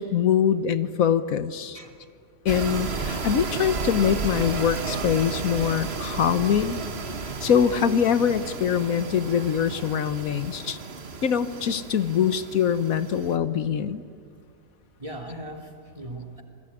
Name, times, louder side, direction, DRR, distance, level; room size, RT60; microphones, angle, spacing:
voice 1, 0.0-1.8 2.4-6.8 7.4-10.8 11.2-14.0, left 8 dB, 80° left, 13 dB, 1.4 m, -23 dB
sound 1, 2.5-13.4, right 4 dB, 50° right, 1.7 m, -33 dB
voice 2, 15.0-16.4, right 1 dB, 25° right, 3 dB, 3.1 m, -39 dB
28.0 x 21.0 x 9.9 m, 2.3 s
omnidirectional pair, 1.5 m